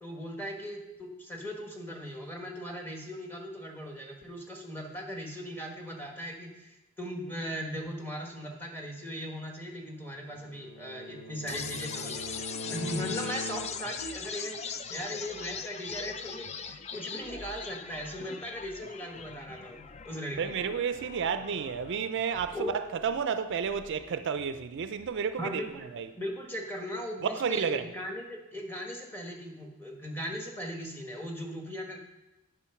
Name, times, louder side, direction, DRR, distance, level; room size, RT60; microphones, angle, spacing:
voice 1, 0.0-12.2 12.6-20.6 22.5-22.8 25.4-25.9 26.1-32.0, equal, 10° left, 1.4 m, -38 dB
Bowed string instrument, 10.2-14.1, left 1 dB, 75° left, 1.1 m, -41 dB
sound 1, 11.5-25.5, left 6 dB, 30° left, 0.4 m, -42 dB
voice 2, 20.4-25.6 25.9-26.1 27.3-27.9, right 6 dB, 60° right, 0.4 m, -31 dB
10.0 x 5.0 x 5.8 m
head